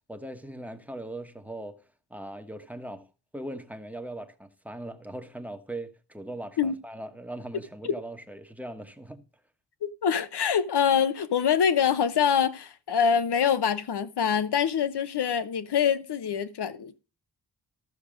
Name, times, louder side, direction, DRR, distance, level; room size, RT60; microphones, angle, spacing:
voice 1, 0.1-1.8 2.1-3.1 3.3-9.2, right 1 dB, 5° right, 1.1 m, -40 dB
voice 2, 9.8-17.0, left 7 dB, 65° left, 1.0 m, -25 dB
14.0 x 6.6 x 5.0 m
wide cardioid pair, 145°, 43 cm